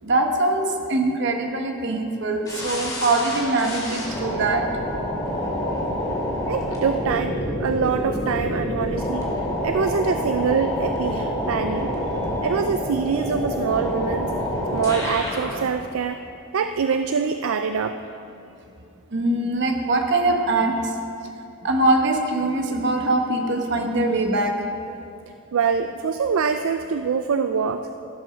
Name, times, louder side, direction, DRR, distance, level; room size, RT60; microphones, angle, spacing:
voice 1, 0.0-4.7 19.1-20.9 21.6-24.6, right 2 dB, 55° right, 3 dB, 1.2 m, -22 dB
sound 1, 2.5-15.6, left 1 dB, 15° left, 2.2 m, -27 dB
voice 2, 6.5-9.3 9.6-11.9 12.4-14.3 14.7-16.2 16.5-18.0 25.5-27.8, right 6 dB, 70° right, 9 dB, 0.4 m, -24 dB
15.0 x 6.2 x 6.3 m, 2.7 s
head